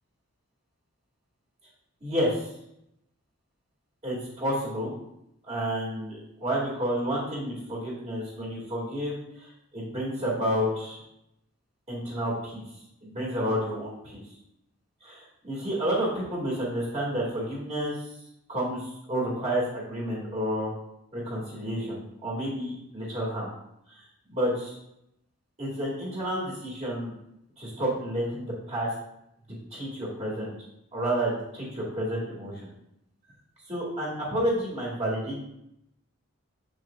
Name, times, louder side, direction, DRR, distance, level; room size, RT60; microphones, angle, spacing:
voice 1, 2.0-2.5 4.0-4.9 5.5-9.1 9.4-11.0 11.9-12.6 13.0-14.2 15.0-18.0 18.5-20.7 21.1-23.5 23.9-24.0 24.3-24.8 25.6-27.1 27.6-28.9 29.7-30.5 30.9-32.7 33.7-35.4, equal, 30° right, -5 dB, 2.2 m, -30 dB
7.8 x 6.3 x 2.4 m, 0.80 s
head